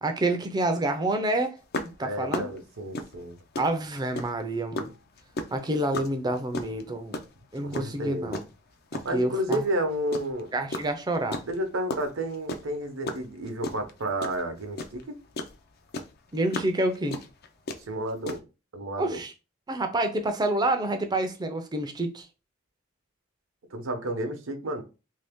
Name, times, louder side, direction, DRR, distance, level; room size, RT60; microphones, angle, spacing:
voice 1, 0.0-1.6 2.0-2.5 3.6-4.9 5.5-7.2 7.5-8.4 8.9-9.6 10.5-11.4 16.3-17.2 19.0-19.3 19.7-22.3, right 1 dB, 20° right, 0.5 m, -28 dB
sound 1, 1.7-4.4 4.7-8.5 8.9-10.4 10.7-15.6 15.9-18.4, left 2 dB, 50° left, 0.5 m, -34 dB
voice 2, 2.0-3.4 7.6-8.4 9.0-10.5 11.4-15.1 17.8-18.4 18.7-19.2 23.7-24.8, right 1 dB, 70° right, 0.8 m, -31 dB
2.9 x 2.7 x 3.5 m
head